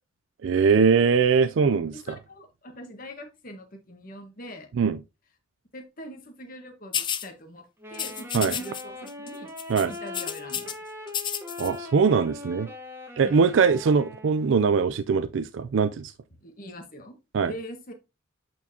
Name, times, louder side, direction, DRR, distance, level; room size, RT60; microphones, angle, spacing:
voice 1, 0.4-2.2 4.8-5.0 8.3-8.5 9.7-9.9 11.6-12.7 13.2-16.1 17.3-17.5, right 5 dB, 65° right, 0.4 m, -22 dB
voice 2, 1.9-4.7 5.7-9.5 9.9-10.7 13.2-13.4 16.4-17.2 17.4-17.9, equal, 45° left, 1.4 m, -42 dB
sound 1, 6.9-7.3 7.9-8.8 9.1-9.3 9.6-10.7 11.1-11.7, left 8 dB, 25° left, 0.4 m, -31 dB
Wind instrument woodwind instrument, 7.8-14.7, left 2 dB, 10° right, 1.2 m, -41 dB
8.2 x 4.5 x 2.8 m
head